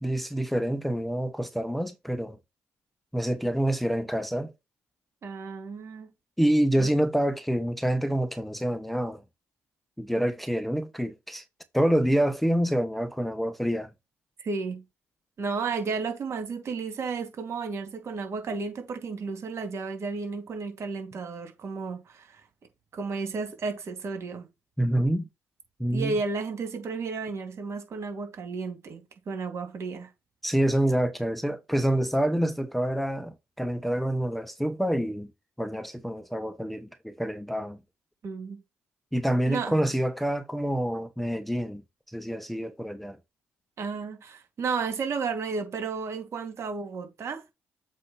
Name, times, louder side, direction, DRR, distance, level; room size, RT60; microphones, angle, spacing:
voice 1, 0.0-2.4 3.1-4.5 6.4-9.2 10.0-11.4 11.7-13.9 24.8-25.3 25.8-26.2 30.4-35.3 35.6-37.8 39.1-41.8 42.1-43.2, right 1 dB, ahead, 1.0 m, -27 dB
voice 2, 5.2-6.1 6.8-6.9 14.4-14.8 15.4-22.4 22.9-24.5 25.9-30.1 38.2-38.6 39.5-39.8 43.8-47.4, right 4 dB, 55° right, 3.2 m, -33 dB
7.6 x 2.8 x 5.8 m
supercardioid pair, 65°, 6 cm